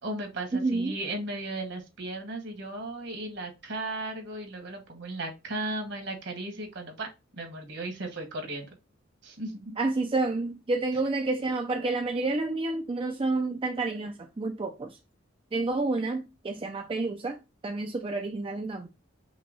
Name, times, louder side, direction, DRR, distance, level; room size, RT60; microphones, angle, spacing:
voice 1, 0.0-7.1 7.4-8.7 9.2-9.8, right 2 dB, 60° right, 1.5 m, -36 dB
voice 2, 0.5-1.0 9.8-15.0 15.5-17.4 17.6-18.9, right 3 dB, 25° right, 0.4 m, -29 dB
5.6 x 2.3 x 4.0 m
head